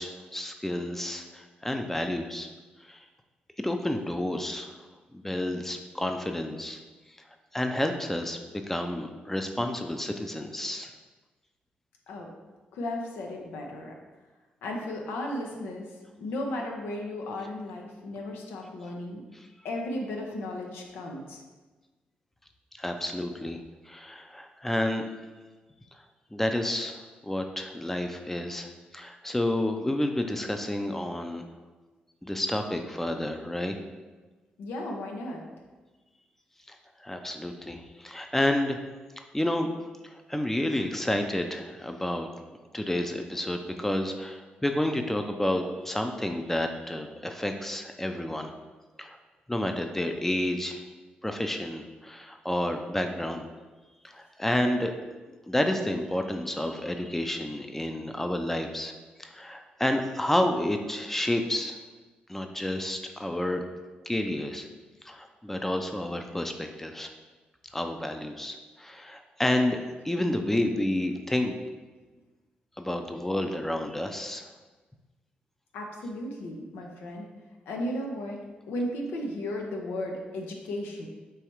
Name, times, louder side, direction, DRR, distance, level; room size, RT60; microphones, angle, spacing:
voice 1, 0.0-2.5 2.9-3.0 3.6-4.8 5.1-6.8 7.5-8.4 8.7-10.9 19.3-19.5 22.7-23.6 23.9-25.0 26.3-31.4 32.2-33.8 36.7-36.8 37.0-38.8 39.2-39.7 40.0-42.3 42.7-48.5 49.0-49.2 49.5-50.8 51.2-53.5 54.0-54.9 55.3-58.9 59.2-61.8 62.3-63.6 64.1-64.7 65.0-67.1 67.7-71.6 72.8-74.4, left 1 dB, 10° left, 5 dB, 0.4 m, -30 dB
voice 2, 12.7-13.9 14.6-15.9 16.2-19.2 19.6-21.4 34.6-35.4 75.7-77.2 77.7-78.4 78.7-81.1, left 1 dB, 90° left, 1 dB, 0.6 m, -35 dB
4.8 x 3.1 x 3.0 m, 1.3 s
cardioid pair, 60°, 3 cm